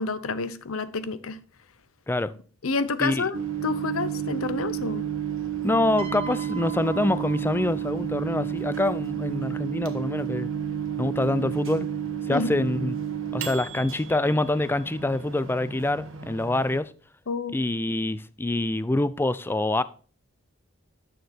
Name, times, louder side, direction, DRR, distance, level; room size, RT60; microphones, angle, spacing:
voice 1, 0.0-1.4 2.6-3.4 3.6-5.1 12.3-12.5 17.3-17.6, left 4 dB, 80° left, 0.7 m, -29 dB
Microwave oven, 3.3-16.8, right 8 dB, 70° right, 1.2 m, -31 dB
voice 2, 5.6-10.5 11.0-11.9 12.3-13.0 13.3-16.9 17.5-19.8, left 2 dB, 10° left, 0.3 m, -26 dB
Piano, 6.0-8.3 9.4-9.6, right 4 dB, 25° right, 0.9 m, -41 dB
9.4 x 6.6 x 4.3 m
head